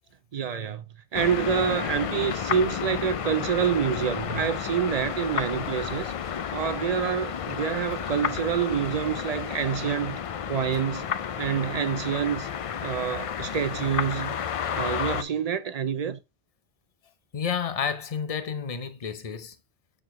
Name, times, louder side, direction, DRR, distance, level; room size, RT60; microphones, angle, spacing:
voice 1, 0.3-0.8 1.1-6.1 6.5-10.2 10.5-11.1 11.4-12.5 12.8-14.4 14.7-16.2, right 7 dB, 50° right, 0.4 m, -27 dB
sound 1, 1.1-15.2, left 8 dB, 60° left, 0.3 m, -31 dB
voice 2, 17.3-19.5, left 7 dB, 35° left, 0.8 m, -30 dB
6.6 x 6.1 x 3.1 m
omnidirectional pair, 1.1 m